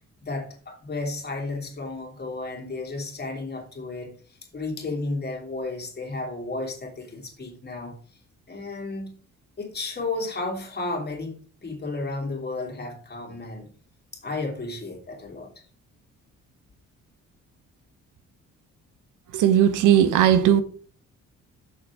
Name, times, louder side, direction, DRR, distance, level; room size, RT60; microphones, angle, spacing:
voice 1, 0.2-4.1 4.5-8.0 8.5-9.2 9.6-13.7 14.2-15.5, left 2 dB, 35° left, 2.9 m, -33 dB
voice 2, 19.3-20.6, right 10 dB, 85° right, 1.0 m, -17 dB
6.7 x 6.4 x 4.9 m
cardioid pair, 90°, 30 cm